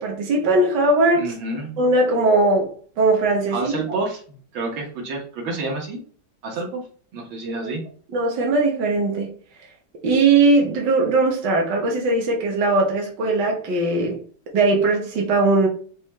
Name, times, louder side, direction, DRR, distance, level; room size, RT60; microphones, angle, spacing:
voice 1, 0.0-1.3 1.8-3.7 8.1-9.3 10.0-14.2 14.5-15.7, right 2 dB, 65° right, 1.7 m, -19 dB
voice 2, 1.2-1.8 3.5-4.2 4.5-6.0 6.4-6.8 7.1-7.8, right 3 dB, 85° right, 2.0 m, -29 dB
6.0 x 2.3 x 3.0 m
omnidirectional pair, 2.1 m